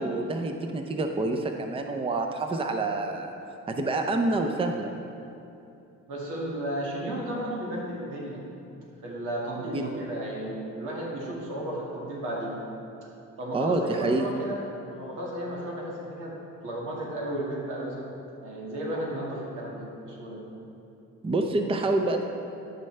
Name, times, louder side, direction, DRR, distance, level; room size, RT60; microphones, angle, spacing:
voice 1, 0.0-3.3 3.7-4.9 9.7-9.9 13.5-14.3 21.2-22.2, right 2 dB, 20° right, 4 dB, 0.6 m, -27 dB
voice 2, 6.1-8.4 9.0-12.6 13.4-16.3 16.6-18.1 18.4-20.4, right 1 dB, 85° right, -4 dB, 2.0 m, -34 dB
13.0 x 5.4 x 3.3 m, 2.8 s
cardioid pair, 90°, 30 cm